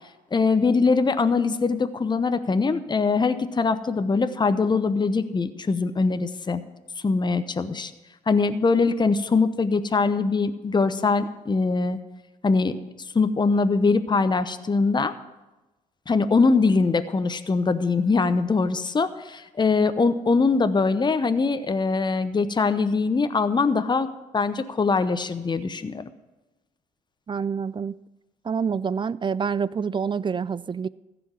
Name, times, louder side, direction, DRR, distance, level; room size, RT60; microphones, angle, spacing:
voice 1, 0.3-6.6 7.0-7.9 8.3-12.0 12.4-12.8 13.1-15.1 16.1-24.1 24.3-26.1, left 4 dB, 25° left, 11 dB, 0.9 m, -22 dB
voice 2, 27.3-28.0 28.4-30.9, right 6 dB, 30° right, 20 dB, 0.4 m, -27 dB
14.5 x 5.2 x 8.9 m, 1.1 s
hypercardioid pair, 55°, 17 cm